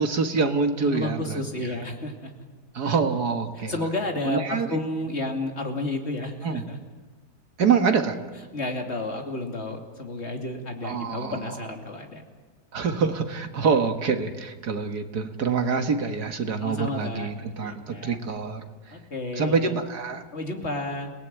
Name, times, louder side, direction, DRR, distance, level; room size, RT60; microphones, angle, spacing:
voice 1, 0.0-1.4 2.7-3.7 4.2-4.8 6.4-6.6 7.6-8.2 10.8-11.4 12.7-19.0 19.4-20.2, right 5 dB, 65° right, 6 dB, 2.1 m, -25 dB
voice 2, 0.8-2.3 2.8-3.0 3.5-6.8 8.5-12.2 16.6-17.3 17.6-18.2 18.9-19.7 20.3-21.1, left 2 dB, 40° left, 2 dB, 3.0 m, -31 dB
30.0 x 18.0 x 9.1 m, 1.4 s
omnidirectional pair, 1.8 m